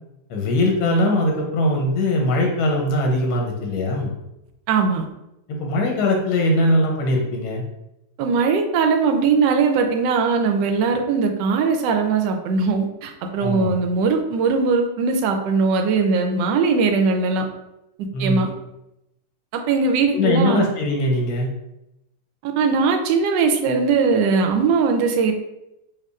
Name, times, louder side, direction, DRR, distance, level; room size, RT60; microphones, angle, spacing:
voice 1, 0.3-4.1 5.5-7.6 13.4-13.7 18.1-18.4 20.1-21.5, left 1 dB, 85° left, 0 dB, 1.6 m, -21 dB
voice 2, 4.7-5.0 8.2-17.4 18.0-18.5 19.5-20.7 22.4-25.3, right 4 dB, 75° right, 4 dB, 1.1 m, -20 dB
4.7 x 2.5 x 2.4 m, 0.88 s
omnidirectional pair, 2.3 m